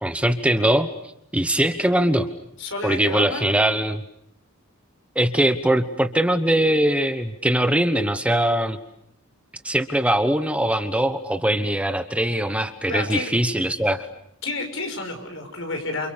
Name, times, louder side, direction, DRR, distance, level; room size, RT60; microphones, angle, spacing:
voice 1, 0.0-0.9 1.3-2.3 2.8-4.0 5.1-8.8 9.6-14.1, right 1 dB, 5° right, 8 dB, 1.2 m, -21 dB
voice 2, 2.6-3.5 12.9-13.3 14.4-16.1, left 2 dB, 65° left, 4 dB, 6.6 m, -29 dB
29.5 x 28.5 x 6.9 m, 0.73 s
head